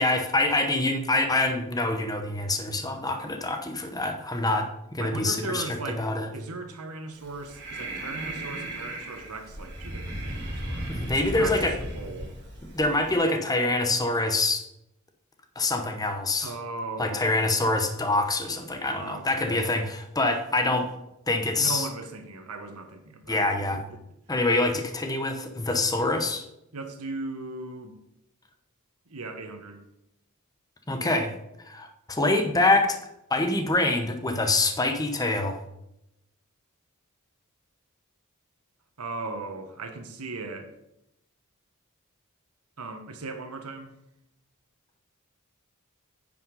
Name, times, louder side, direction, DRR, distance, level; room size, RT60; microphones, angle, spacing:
voice 1, 0.0-5.6 6.0-6.3 10.9-11.7 12.7-14.6 15.6-16.5 17.0-20.9 21.3-21.9 23.3-23.8 24.3-26.4 30.9-31.3 31.7-33.0 33.3-35.6, left 2 dB, 15° left, 5 dB, 0.9 m, -25 dB
voice 2, 5.0-12.3 12.9-13.2 16.4-17.4 18.9-19.7 21.6-23.5 23.7-24.0 26.7-27.9 29.1-29.8 39.0-40.7 42.8-43.9, right 3 dB, 80° right, 6 dB, 1.3 m, -38 dB
Breathing, 7.2-13.1, right 1 dB, 55° right, 3.3 m, -36 dB
9.5 x 5.3 x 5.4 m, 0.84 s
head